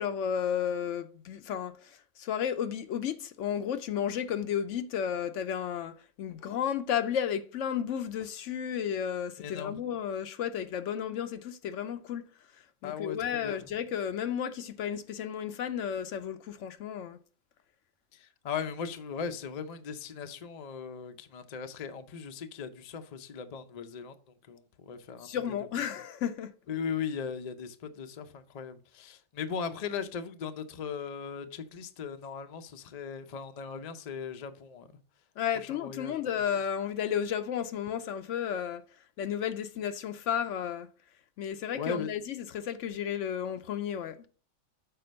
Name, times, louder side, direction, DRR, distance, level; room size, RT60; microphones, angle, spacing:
voice 1, 0.0-12.3 12.8-17.2 25.2-26.5 35.4-38.8 39.2-40.9 41.4-44.3, left 8 dB, 70° left, 0.9 m, -33 dB
voice 2, 9.4-9.7 12.8-13.6 18.1-24.1 24.5-25.3 26.7-34.9 35.5-36.2 41.7-42.1, left 6 dB, 45° left, 0.5 m, -38 dB
6.7 x 4.3 x 5.1 m
omnidirectional pair, 1.4 m